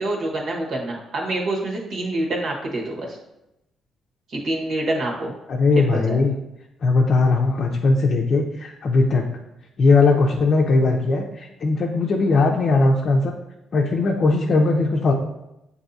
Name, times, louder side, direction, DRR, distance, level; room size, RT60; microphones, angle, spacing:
voice 1, 0.0-3.2 4.3-5.3 5.8-6.2, right 2 dB, 65° right, -1 dB, 1.2 m, -26 dB
voice 2, 5.5-6.3 6.8-9.2 9.8-13.3 13.7-15.1, left 3 dB, 50° left, 0 dB, 0.5 m, -19 dB
7.5 x 2.7 x 2.6 m, 0.89 s
cardioid pair, 90°, 0 cm